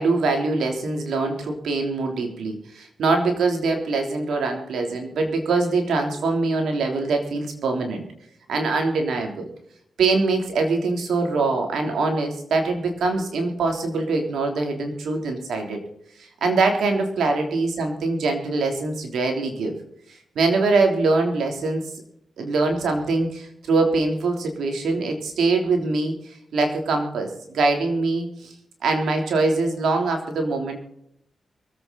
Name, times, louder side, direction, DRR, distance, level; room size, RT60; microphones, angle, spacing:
voice 1, 0.0-8.0 8.5-9.5 10.0-15.8 16.2-19.8 20.1-21.9 22.4-26.1 26.5-28.5 28.8-30.8, right 3 dB, 85° right, 3 dB, 3.2 m, -23 dB
23.5 x 8.7 x 4.0 m, 0.71 s
cardioid pair, 60°, 0 cm